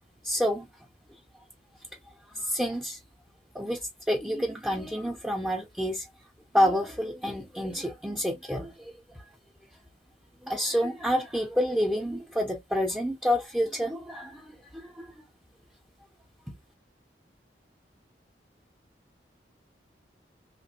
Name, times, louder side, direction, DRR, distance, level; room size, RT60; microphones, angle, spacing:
voice 1, 0.2-0.7 2.3-3.0 3.5-6.1 6.5-9.2 10.4-15.2, equal, 5° right, 0.5 m, -29 dB
3.2 x 2.4 x 2.8 m
head